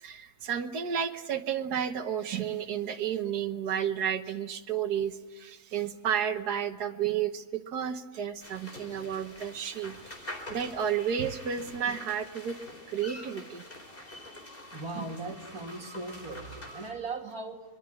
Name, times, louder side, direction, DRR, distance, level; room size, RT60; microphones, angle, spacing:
voice 1, 0.0-12.6 12.9-13.6 15.0-15.1, right 8 dB, 85° right, 7 dB, 1.7 m, -32 dB
sound 1, 8.4-16.9, left 1 dB, 35° left, 4.4 m, -46 dB
voice 2, 14.7-17.6, right 3 dB, 65° right, 2 dB, 3.2 m, -38 dB
24.5 x 22.0 x 9.9 m, 1.1 s
omnidirectional pair, 1.7 m